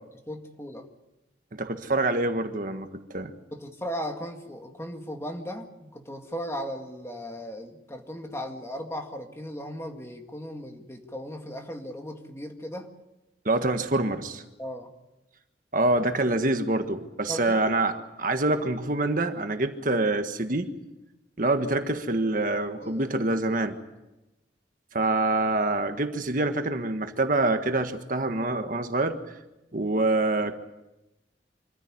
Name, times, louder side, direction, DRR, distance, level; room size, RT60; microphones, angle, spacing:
voice 1, 0.3-0.9 3.5-12.9 14.6-14.9 17.3-17.6 22.8-23.1, equal, 15° left, 4 dB, 2.0 m, -37 dB
voice 2, 1.5-3.3 13.4-14.4 15.7-20.7 21.4-23.8 24.9-29.2 29.7-30.5, right 2 dB, 50° right, 7 dB, 1.5 m, -26 dB
25.5 x 15.0 x 9.7 m, 0.99 s
head